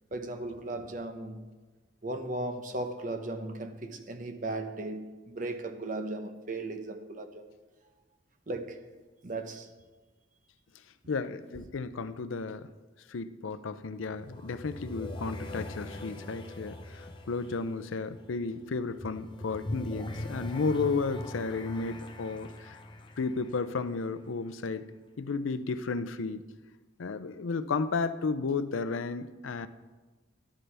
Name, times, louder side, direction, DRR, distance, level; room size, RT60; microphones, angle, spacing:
voice 1, 0.1-1.4 2.0-7.5 8.5-8.8 9.2-9.7, right 2 dB, 40° right, 0.8 m, -36 dB
voice 2, 11.1-12.7 13.1-22.8 23.2-24.9 25.2-26.4 27.0-29.7, left 4 dB, 85° left, 0.5 m, -33 dB
sound 1, 13.8-24.5, left 1 dB, 25° left, 0.7 m, -41 dB
12.5 x 11.5 x 3.4 m
head